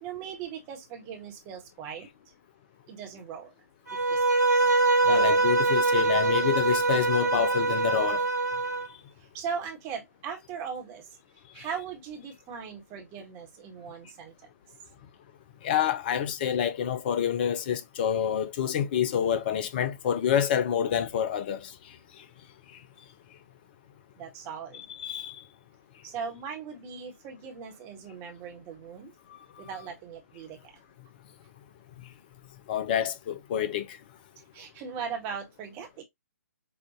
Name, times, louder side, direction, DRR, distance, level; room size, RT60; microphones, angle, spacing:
voice 1, 0.0-2.1 2.9-3.5 4.1-4.2 4.5-4.6 9.3-11.0 11.5-14.3 24.2-24.8 26.0-29.1 29.6-30.6 34.5-35.9, right 6 dB, 25° right, 1.2 m, -38 dB
Bowed string instrument, 3.9-8.9, right 3 dB, 80° right, 1.0 m, -24 dB
voice 2, 5.1-8.3 11.6-11.7 15.6-22.2 22.7-22.8 24.7-25.4 29.3-29.4 32.7-34.0, left 9 dB, 35° left, 0.6 m, -28 dB
5.6 x 2.5 x 2.8 m
figure-of-eight pair, 130°, 9 cm